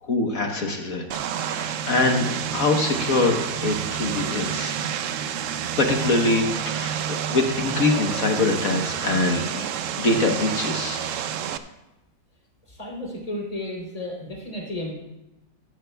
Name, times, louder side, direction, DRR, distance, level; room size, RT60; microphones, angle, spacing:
voice 1, 0.0-1.1 1.4-4.7 5.8-11.0, left 2 dB, 55° left, 3 dB, 1.4 m, -24 dB
Vehicle, 1.1-11.6, right 9 dB, 70° right, 0.7 m, -29 dB
voice 2, 12.7-14.9, left 1 dB, 20° left, -2 dB, 3.3 m, -33 dB
14.5 x 14.0 x 2.3 m, 0.95 s
omnidirectional pair, 1.9 m